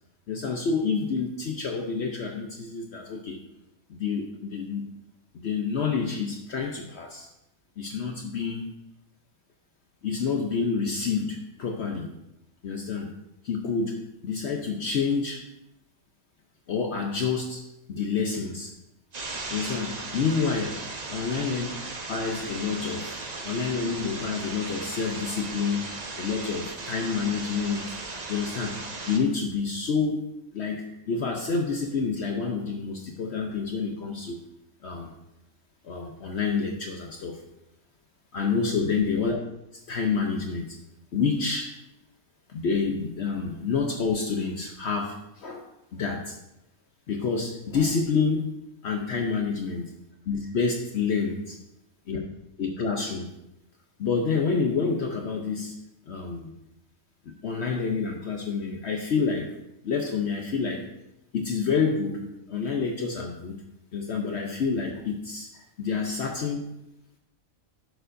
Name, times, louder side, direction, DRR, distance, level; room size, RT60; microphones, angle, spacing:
voice 1, 0.3-3.4 3.9-4.8 5.4-7.3 7.8-8.7 10.0-12.1 12.6-13.1 13.4-14.0 14.2-15.4 16.7-17.6 17.9-18.7 19.5-20.8 21.1-21.7 22.1-23.2 23.4-25.9 26.2-27.9 28.3-28.8 29.1-30.2 30.5-34.4 34.8-35.1 35.8-37.4 38.3-39.4 39.7-40.8 41.1-41.7 42.5-45.7 45.9-46.4 47.1-48.5 48.8-49.9 50.3-51.6 52.1-52.2 52.6-53.3 54.0-55.8 56.1-56.5 57.3-59.5 59.8-60.8 61.3-62.2 62.5-63.6 63.9-66.6, left 5 dB, 60° left, 2 dB, 0.9 m, -28 dB
sound 1, 19.1-29.2, right 3 dB, 35° right, 0.9 m, -37 dB
11.0 x 6.7 x 2.6 m, 0.88 s
omnidirectional pair, 1.4 m